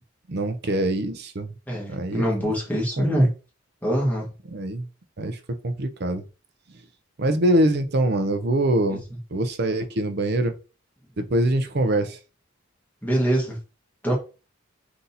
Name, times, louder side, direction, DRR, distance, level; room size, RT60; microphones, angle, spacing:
voice 1, 0.3-1.5 1.9-2.5 3.0-3.3 4.5-4.9 5.2-6.2 7.2-9.0 9.3-10.6 11.2-12.2, right 1 dB, 50° right, 0.6 m, -24 dB
voice 2, 1.7-3.3 3.8-4.3 8.9-9.0 13.0-13.6 14.0-14.2, right 1 dB, 10° left, 1.5 m, -23 dB
3.9 x 2.8 x 4.0 m
head